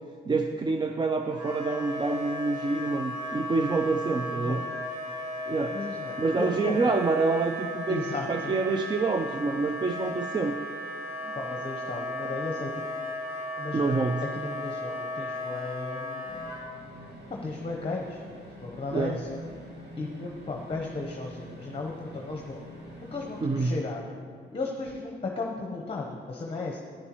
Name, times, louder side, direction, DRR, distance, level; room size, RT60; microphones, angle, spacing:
voice 1, 0.3-4.6 5.5-5.8 6.2-8.0 8.3-10.6 11.2-11.4 13.7-14.2 18.9-19.2 23.4-23.8, right 3 dB, 25° right, 5 dB, 0.4 m, -27 dB
Wind instrument woodwind instrument, 1.3-16.6, left 1 dB, 90° right, 2.4 m, -36 dB
voice 2, 4.3-4.7 5.7-6.9 7.9-8.5 11.3-12.7 13.6-14.0 14.2-16.3 17.3-18.2 18.6-19.4 20.0-22.7 23.1-24.2 24.5-26.8, left 3 dB, 30° left, 0 dB, 0.9 m, -35 dB
sound 1, 16.2-23.7, equal, 55° right, 1.7 m, -45 dB
10.0 x 9.5 x 3.0 m, 2.1 s
cardioid pair, 90°, 20 cm